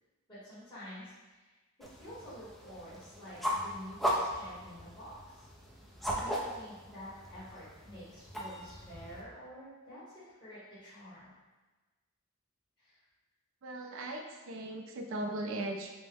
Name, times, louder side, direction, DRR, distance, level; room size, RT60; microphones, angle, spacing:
voice 1, 0.3-1.5 2.0-5.5 6.1-11.3 12.8-13.0, equal, 20° left, -13 dB, 1.2 m, -49 dB
sound 1, 1.8-9.2, equal, ahead, 0.4 m, -38 dB
voice 2, 13.6-15.9, right 1 dB, 65° right, 3 dB, 0.5 m, -38 dB
4.4 x 2.1 x 3.4 m, 1.2 s
head